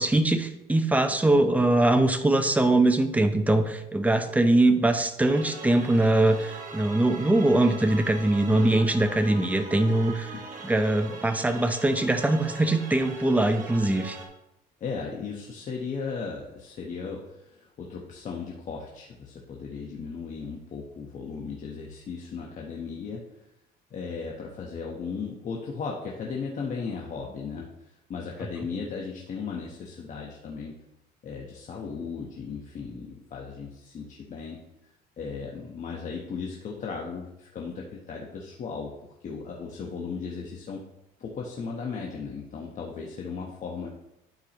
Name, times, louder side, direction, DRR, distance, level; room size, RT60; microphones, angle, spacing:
voice 1, 0.0-10.3 10.6-14.2, right 2 dB, 10° right, 7 dB, 0.7 m, -22 dB
sound 1, 5.2-14.3, right 3 dB, 50° right, 1.4 m, -41 dB
voice 2, 14.8-23.5 23.9-30.8 31.2-38.9 39.2-40.8 41.2-43.9, left 5 dB, 50° left, -1 dB, 1.1 m, -36 dB
12.0 x 4.7 x 3.0 m, 0.88 s
cardioid pair, 110°, 17 cm